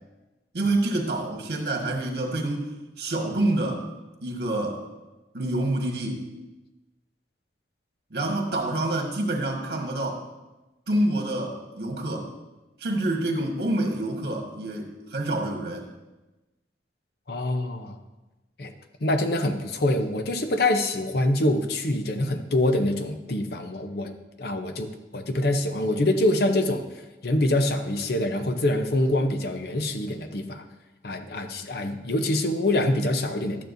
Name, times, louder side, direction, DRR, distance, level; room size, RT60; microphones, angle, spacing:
voice 1, 0.5-2.7 3.0-3.8 4.2-4.8 5.3-6.2 8.1-10.2 10.9-12.3 12.8-15.9, right 1 dB, 60° right, 1 dB, 1.6 m, -27 dB
voice 2, 17.3-18.0 18.6-18.7 19.0-24.1 24.4-26.8 27.2-30.7 31.0-33.6, left 1 dB, 60° left, 7 dB, 0.7 m, -25 dB
12.0 x 9.1 x 2.7 m, 1.1 s
head